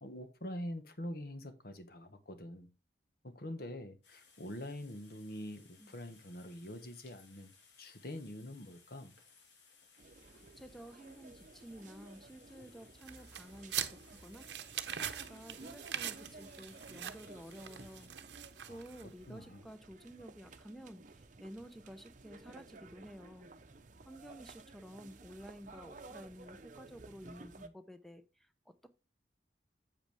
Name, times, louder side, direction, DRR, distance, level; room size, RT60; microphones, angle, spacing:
voice 1, 0.0-2.7 3.2-9.1 18.7-19.6, left 1 dB, 55° left, 1.3 m, -45 dB
sound 1, 4.0-18.1, left 5 dB, 80° left, 2.1 m, -64 dB
sound 2, 10.0-27.7, right 3 dB, 45° right, 0.8 m, -55 dB
voice 2, 10.6-14.5 14.9-18.4 18.7-23.5 24.1-28.9, equal, ahead, 0.8 m, -52 dB
sound 3, 13.0-19.2, right 10 dB, 70° right, 0.8 m, -43 dB
8.0 x 7.5 x 3.5 m
head